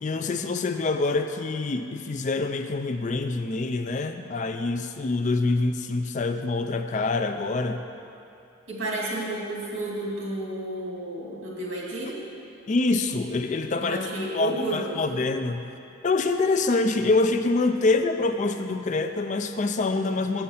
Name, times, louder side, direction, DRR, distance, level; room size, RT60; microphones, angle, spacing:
voice 1, 0.0-7.8 12.7-14.0 14.3-15.6 16.0-20.4, left 3 dB, 35° left, 7 dB, 0.4 m, -25 dB
voice 2, 8.7-12.2 13.8-15.2, right 1 dB, 75° right, -4 dB, 2.2 m, -31 dB
8.5 x 5.7 x 7.1 m, 2.7 s
head